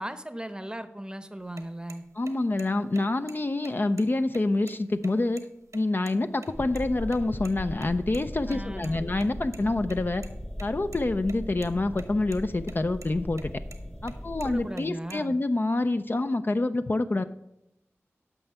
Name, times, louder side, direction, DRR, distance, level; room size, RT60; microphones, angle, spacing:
voice 1, 0.0-2.0 8.5-9.1 14.4-15.4, right 1 dB, 15° right, 10 dB, 0.7 m, -37 dB
sound 1, 1.4-6.5 6.7-6.8 7.1-7.2 7.4-7.5 7.8-7.9 8.1-8.2 8.5-9.6 9.9-10.3 10.6-11.3 11.6-12.0 12.3-12.7 13.0-13.1 13.4-13.8 14.1-15.2, right 3 dB, 80° right, 1.0 m, -47 dB
voice 2, 2.2-5.4 5.7-10.3 10.6-13.5 14.0-17.2, left 2 dB, 40° left, 9 dB, 0.4 m, -27 dB
sound 2, 6.5-14.7, equal, 10° left, 1.0 m, -38 dB
9.0 x 5.9 x 5.4 m, 0.85 s
cardioid pair, 45°, 5 cm